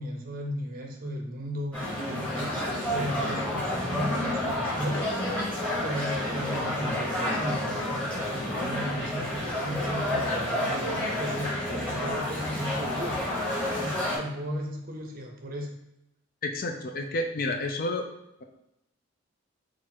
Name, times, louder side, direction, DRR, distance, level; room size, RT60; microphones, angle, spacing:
voice 1, 0.0-1.8 2.1-5.0 5.8-13.2 13.7-15.8, equal, 40° right, 2 dB, 0.6 m, -36 dB
sound 1, 1.7-14.2, left 1 dB, 5° left, 1.1 m, -30 dB
voice 2, 16.4-18.1, left 2 dB, 40° left, 4 dB, 0.4 m, -30 dB
3.9 x 2.4 x 4.3 m, 0.86 s
head